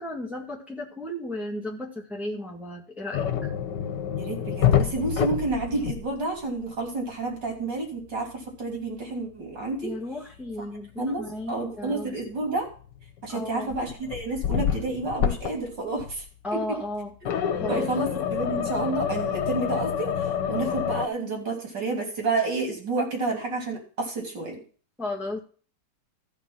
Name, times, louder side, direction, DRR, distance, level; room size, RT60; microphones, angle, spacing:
voice 1, 0.0-3.5 9.8-12.1 13.3-13.7 16.4-17.1 17.5-17.9 25.0-25.4, left 1 dB, ahead, -1 dB, 1.8 m, -34 dB
sound 1, 3.1-6.4 6.6-6.9 10.3-10.4 12.7-13.2 13.7-15.7 16.0-16.3 17.2-21.1, left 9 dB, 85° left, 1.7 m, -27 dB
voice 2, 4.1-8.3 8.6-9.9 11.0-12.7 13.2-16.2 17.7-20.1 20.5-24.6, right 3 dB, 85° right, 1 dB, 3.9 m, -30 dB
14.0 x 5.8 x 5.8 m, 0.41 s
omnidirectional pair, 1.9 m